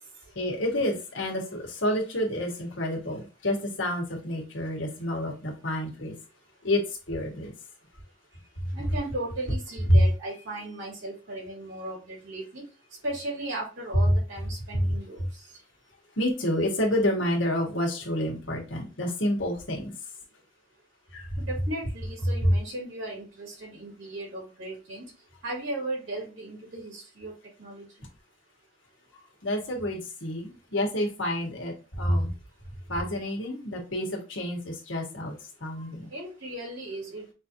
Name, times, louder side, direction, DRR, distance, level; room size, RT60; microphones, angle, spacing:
voice 1, 0.3-6.1 6.6-7.5 8.6-8.7 9.9-10.0 14.7-14.9 15.2-15.3 16.2-19.9 21.1-21.4 22.4-22.5 29.4-32.3 32.9-35.3 35.6-36.1, equal, 70° left, 1 dB, 1.6 m, -28 dB
voice 2, 8.7-12.6 13.0-15.5 21.4-25.1 25.4-27.9 36.0-37.3, right 1 dB, 80° right, -1 dB, 2.6 m, -36 dB
6.0 x 2.8 x 2.9 m, 0.31 s
head